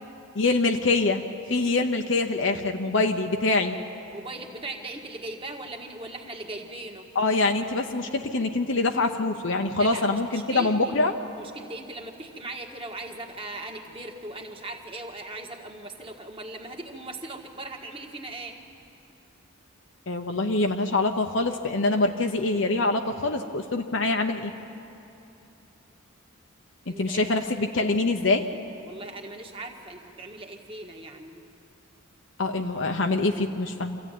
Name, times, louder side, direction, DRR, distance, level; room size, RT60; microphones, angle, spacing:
voice 1, 0.3-1.2 1.5-3.8 7.1-11.1 20.1-24.5 26.9-28.5 32.4-34.0, left 3 dB, 60° left, 4 dB, 0.9 m, -24 dB
voice 2, 4.1-7.1 9.8-11.0 11.4-18.5 26.9-27.3 28.8-31.4, right 2 dB, 25° right, 2 dB, 1.7 m, -39 dB
25.5 x 15.0 x 9.2 m, 2.8 s
head